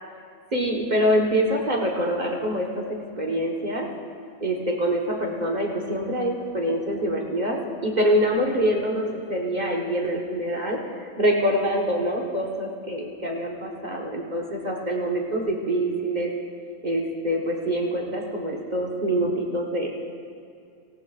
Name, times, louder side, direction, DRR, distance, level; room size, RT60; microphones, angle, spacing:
voice 1, 0.5-2.8 3.2-3.9 4.4-7.6 7.8-16.3 16.8-19.9, equal, 40° right, -1 dB, 1.3 m, -25 dB
18.0 x 15.0 x 2.4 m, 2.4 s
omnidirectional pair, 1.2 m